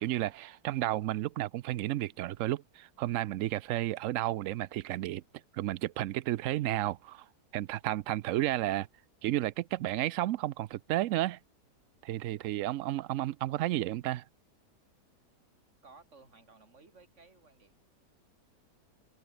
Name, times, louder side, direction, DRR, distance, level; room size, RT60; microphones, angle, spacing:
voice 1, 0.0-5.2 5.5-7.2 7.5-8.9 9.2-11.4 12.0-14.2, right 15 dB, 70° right, 0.8 m, -32 dB
voice 2, 15.8-17.8, right 4 dB, 45° right, 3.7 m, -57 dB
omnidirectional pair, 1.8 m